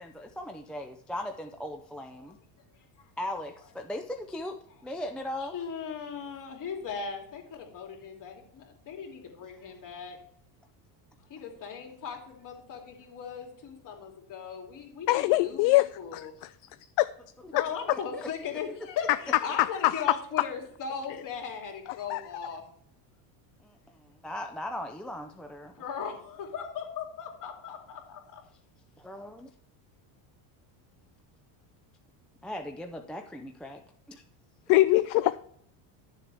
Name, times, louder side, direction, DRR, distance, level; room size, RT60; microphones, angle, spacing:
voice 1, 0.0-2.4 3.2-4.6 4.8-5.5 17.9-18.2 23.6-23.7 24.2-25.2 29.0-29.5 32.4-33.8 34.1-34.2, left 1 dB, ahead, 4 dB, 0.4 m, -38 dB
voice 2, 2.7-3.1 5.4-10.2 11.3-16.5 17.5-22.6 25.8-28.4, left 6 dB, 40° left, 1 dB, 2.9 m, -38 dB
voice 3, 15.1-15.9 16.1-16.3 17.0-17.1 19.6-19.9 22.1-22.2 34.7-35.4, left 18 dB, 55° left, 13 dB, 0.5 m, -22 dB
12.0 x 7.1 x 3.4 m, 0.66 s
cardioid pair, 140°, 49 cm